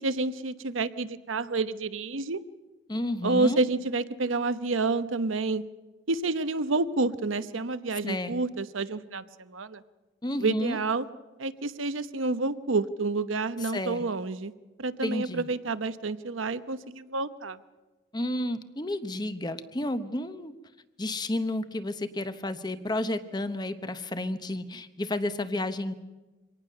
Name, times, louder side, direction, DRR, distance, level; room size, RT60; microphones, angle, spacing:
voice 1, 0.0-2.4 3.2-5.6 6.1-9.8 10.4-11.1 11.4-14.5 14.8-17.6, right 3 dB, 90° right, 12 dB, 0.9 m, -29 dB
voice 2, 2.9-3.6 8.0-8.3 10.2-10.8 13.7-14.0 15.0-15.5 18.1-20.5 21.0-25.9, left 1 dB, 20° left, 11 dB, 0.9 m, -31 dB
24.5 x 18.5 x 6.6 m, 1.2 s
head